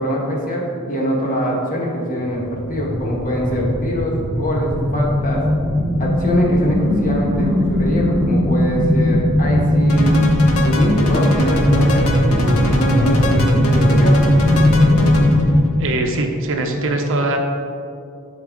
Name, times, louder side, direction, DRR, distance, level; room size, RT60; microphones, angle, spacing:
voice 1, 0.0-5.4 6.0-10.1 10.6-14.3, equal, 35° left, -2 dB, 1.4 m, -23 dB
sound 1, 2.3-15.6, left 1 dB, 5° right, 0.6 m, -18 dB
sound 2, 9.9-15.5, equal, 70° left, 1.0 m, -23 dB
voice 2, 15.8-17.4, right 2 dB, 60° right, 4 dB, 0.7 m, -21 dB
11.0 x 4.6 x 3.7 m, 2.4 s
head